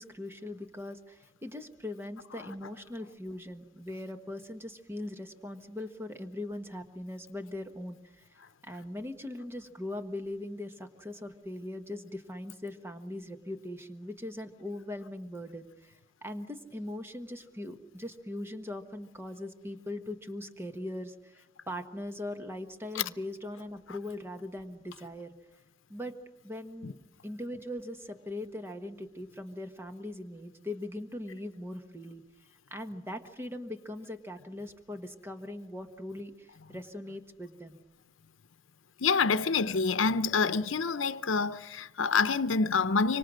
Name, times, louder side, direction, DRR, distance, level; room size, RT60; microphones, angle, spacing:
voice 1, 0.0-8.3 8.6-15.9 16.2-25.3 25.9-26.2 26.4-26.9 27.2-32.2 32.7-37.8, left 1 dB, 10° right, 1.3 m, -40 dB
voice 2, 39.0-43.2, left 5 dB, 85° left, 0.8 m, -27 dB
25.5 x 25.0 x 6.3 m
head